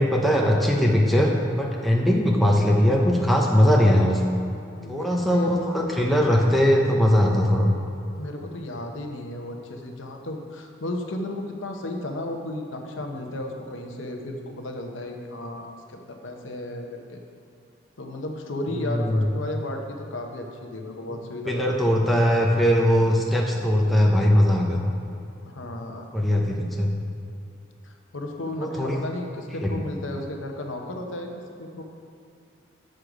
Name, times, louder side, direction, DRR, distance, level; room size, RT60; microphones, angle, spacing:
voice 1, 0.0-4.2 4.9-7.7 18.8-19.3 21.5-24.8 26.1-27.0 28.6-29.0 29.6-29.8, equal, ahead, -2 dB, 0.7 m, -20 dB
voice 2, 4.7-5.5 8.1-17.2 18.0-21.8 25.4-26.1 27.8-31.3 31.6-31.8, left 1 dB, 80° left, 3 dB, 0.9 m, -34 dB
8.0 x 6.5 x 4.9 m, 2.6 s
head